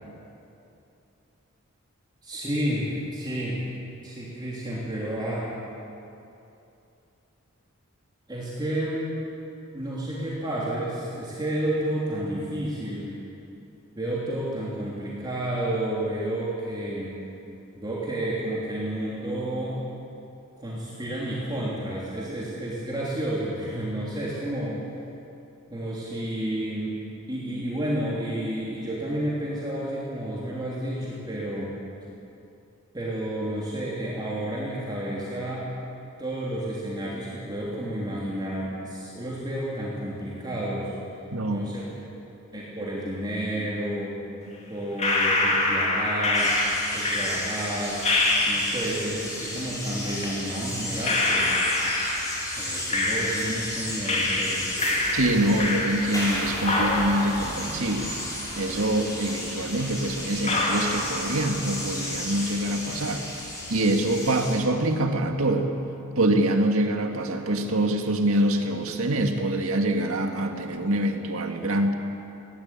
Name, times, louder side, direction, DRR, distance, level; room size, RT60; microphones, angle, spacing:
voice 1, 2.2-3.6 4.0-5.5 8.3-9.0 9.7-13.1 14.0-17.2 17.8-19.8 20.6-24.8 25.7-31.7 32.9-35.7 36.2-40.9 41.4-41.9 42.5-44.2 44.7-46.5 46.9-48.0 48.4-51.6 52.6-54.6, right 1 dB, 20° right, -7 dB, 3.4 m, -31 dB
voice 2, 41.3-41.6 55.1-58.1 58.6-63.2 63.7-65.7 66.2-71.9, right 1 dB, 70° right, 4 dB, 2.0 m, -25 dB
sound 1, 45.0-49.1 50.2-50.3 51.0-53.7 54.1-56.3 56.6-58.7 59.0-59.1 59.8-59.9 60.4-61.8 62.0-62.6, left 2 dB, 30° left, 2.9 m, -26 dB
sound 2, 46.3-64.6, left 1 dB, 15° left, 6.2 m, -34 dB
19.5 x 17.0 x 9.0 m, 2.8 s
head